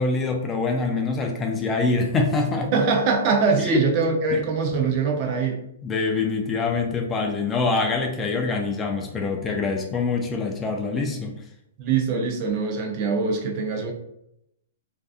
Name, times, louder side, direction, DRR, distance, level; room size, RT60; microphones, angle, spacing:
voice 1, 0.0-2.7 3.6-3.8 5.8-11.4, left 3 dB, 20° left, 3 dB, 0.3 m, -25 dB
voice 2, 2.7-5.6 11.8-13.9, right 4 dB, 45° right, 2 dB, 0.5 m, -23 dB
2.6 x 2.3 x 2.4 m, 0.81 s
hypercardioid pair, 130°, 0 cm